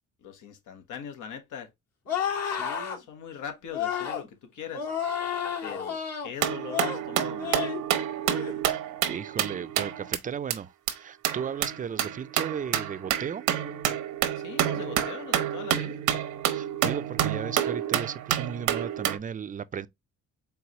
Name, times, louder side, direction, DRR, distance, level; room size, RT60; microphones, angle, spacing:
voice 1, 0.2-1.7 2.4-4.9 5.6-7.6 14.4-16.0, left 8 dB, 80° left, 1.2 m, -41 dB
sound 1, 2.1-3.0 3.7-4.2 4.7-6.3 6.7-7.0 7.4-7.8 8.2-8.5, left 8 dB, 60° left, 1.7 m, -31 dB
sound 2, 6.4-10.2 10.5-10.6 10.9-11.0 11.2-19.2, right 11 dB, 85° right, 0.8 m, -29 dB
voice 2, 9.1-13.4 16.5-19.9, right 7 dB, 30° right, 0.4 m, -35 dB
4.7 x 3.4 x 2.8 m
cardioid pair, 90°, 30 cm